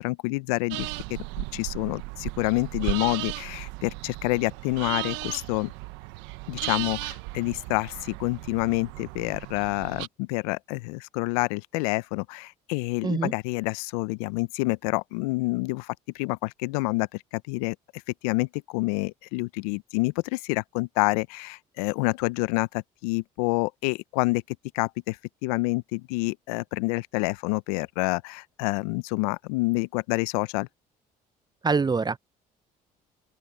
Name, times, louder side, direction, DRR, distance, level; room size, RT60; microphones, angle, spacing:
voice 1, 0.0-5.7 6.5-17.1 17.3-17.8 18.2-24.4 24.7-30.7, left 26 dB, 80° left, 0.6 m, -28 dB
sound 1, 0.7-10.1, right 23 dB, 80° right, 1.1 m, -36 dB
voice 2, 31.6-32.2, right 4 dB, 20° right, 0.7 m, -24 dB
open air
hypercardioid pair, 60°, 19 cm